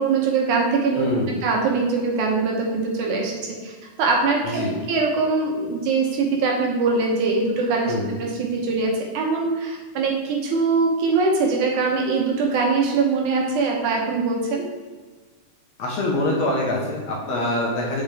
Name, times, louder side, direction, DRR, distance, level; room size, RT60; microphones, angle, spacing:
voice 1, 0.0-1.1 1.4-3.3 3.6-4.6 4.9-7.9 8.2-14.6, right 4 dB, 70° right, 0 dB, 2.3 m, -22 dB
voice 2, 0.9-1.3 4.5-4.8 7.8-8.1 15.8-18.0, left 1 dB, 65° left, -3 dB, 2.0 m, -24 dB
8.0 x 5.8 x 3.4 m, 1.4 s
omnidirectional pair, 3.9 m